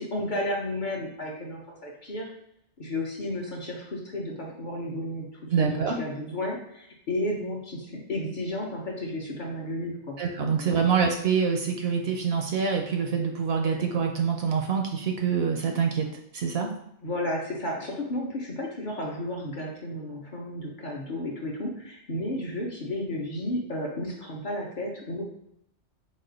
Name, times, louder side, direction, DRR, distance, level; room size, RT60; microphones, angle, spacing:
voice 1, 0.0-2.3 2.8-10.2 10.6-10.9 17.0-25.2, left 1 dB, 50° left, -1 dB, 0.7 m, -33 dB
voice 2, 5.5-6.0 10.2-16.1 16.3-16.7, right 6 dB, 65° right, 2 dB, 0.7 m, -25 dB
4.1 x 2.3 x 3.8 m, 0.75 s
omnidirectional pair, 1.2 m